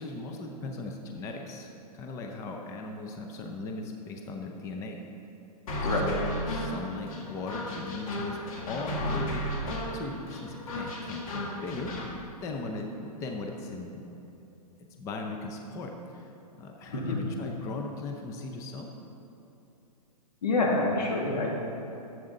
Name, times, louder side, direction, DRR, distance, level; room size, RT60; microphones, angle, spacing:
voice 1, 0.0-1.7 1.9-5.0 5.8-8.4 8.7-11.9 12.4-14.1 15.0-16.3 16.6-18.9, left 3 dB, 15° left, 2 dB, 0.5 m, -38 dB
sound 1, 5.7-12.1, equal, 55° left, 1.9 m, -34 dB
voice 2, 20.4-21.5, left 2 dB, 90° left, -1 dB, 2.1 m, -27 dB
11.0 x 7.8 x 3.8 m, 2.9 s
hypercardioid pair, 150°, 21 cm